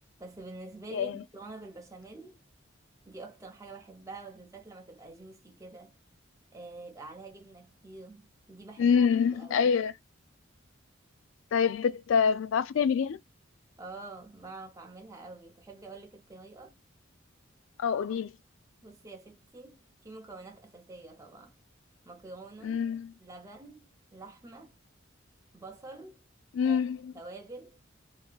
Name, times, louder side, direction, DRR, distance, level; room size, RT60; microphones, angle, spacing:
voice 1, 0.2-2.4 3.1-5.9 6.5-9.1 9.3-9.7 13.8-16.7 18.8-21.5 22.1-22.8 23.2-24.7 25.5-26.2 26.6-26.8 27.1-27.8, right 3 dB, 15° right, 0.6 m, -47 dB
voice 2, 0.9-1.2 8.8-9.9 11.5-13.2 17.8-18.3 22.6-23.1 26.5-27.1, left 6 dB, 70° left, 0.3 m, -26 dB
3.5 x 2.8 x 2.3 m
head